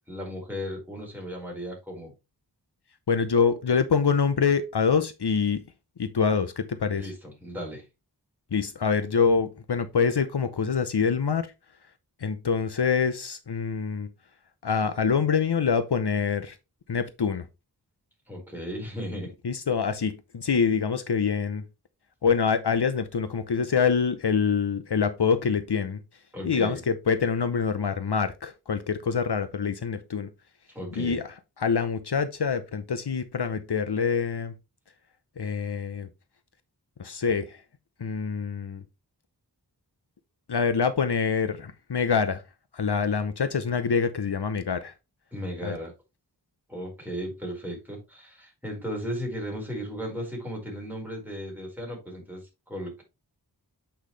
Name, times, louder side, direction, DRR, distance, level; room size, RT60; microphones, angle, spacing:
voice 1, 0.1-2.1 6.9-7.8 18.3-19.3 26.3-26.8 30.7-31.2 45.3-45.9 46.7-53.0, equal, 5° right, 5.0 m, -35 dB
voice 2, 3.1-5.6 6.0-7.0 8.5-11.5 12.2-14.1 14.6-16.6 16.9-17.4 19.4-21.6 22.2-26.0 26.4-30.3 31.0-31.3 31.6-34.5 35.4-36.1 37.0-37.6 38.0-38.8 40.5-42.4 42.7-44.9 45.6-45.8, left 6 dB, 65° left, 0.8 m, -25 dB
8.4 x 5.8 x 3.3 m
wide cardioid pair, 50°, 42 cm